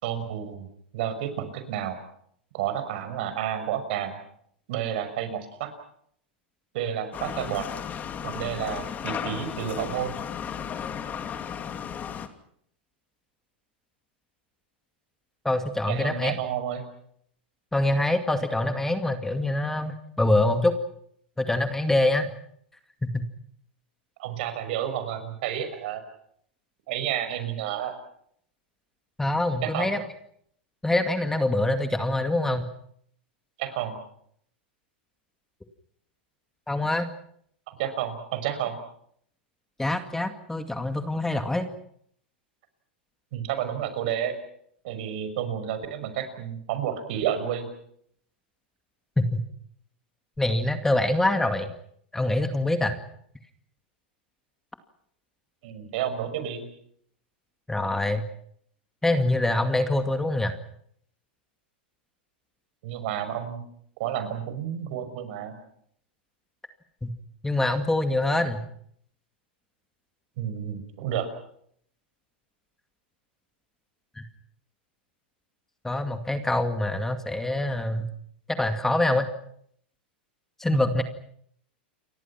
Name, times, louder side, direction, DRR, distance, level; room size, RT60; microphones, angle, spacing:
voice 1, 0.0-2.0 2.5-4.2 4.7-5.7 6.7-7.7 8.2-10.2 15.9-16.9 24.2-26.0 26.9-28.0 29.6-29.9 33.6-34.0 37.7-38.8 43.3-44.4 44.8-47.7 55.6-56.7 62.8-63.6 64.0-65.6 70.4-71.3 80.7-80.8, right 10 dB, 60° right, 10 dB, 6.1 m, -30 dB
sound 1, 7.1-12.3, left 8 dB, 30° left, 2.7 m, -34 dB
voice 2, 15.4-16.4 17.7-20.8 21.4-22.3 23.0-23.3 29.2-30.0 30.8-32.7 36.7-37.1 39.8-41.7 49.2-49.4 50.4-51.7 52.1-53.0 57.7-58.2 59.0-60.5 67.0-67.1 67.4-68.6 74.2-74.3 75.8-78.1 78.6-79.3 80.6-81.0, left 1 dB, 5° left, 7 dB, 2.2 m, -25 dB
29.5 x 23.5 x 6.0 m, 0.68 s
hypercardioid pair, 110°, 6 cm